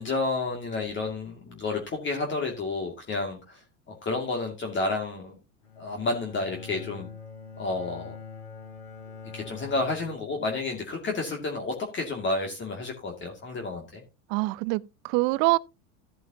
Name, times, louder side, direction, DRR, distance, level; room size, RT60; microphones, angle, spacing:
voice 1, 0.0-5.4 5.8-7.1 7.6-8.2 9.3-14.0, left 3 dB, 30° left, 2.4 m, -31 dB
Bowed string instrument, 5.6-10.9, left 5 dB, 55° left, 4.4 m, -44 dB
voice 2, 14.3-15.6, right 22 dB, 55° right, 0.7 m, -25 dB
14.5 x 7.8 x 2.8 m
hypercardioid pair, 105°, 38 cm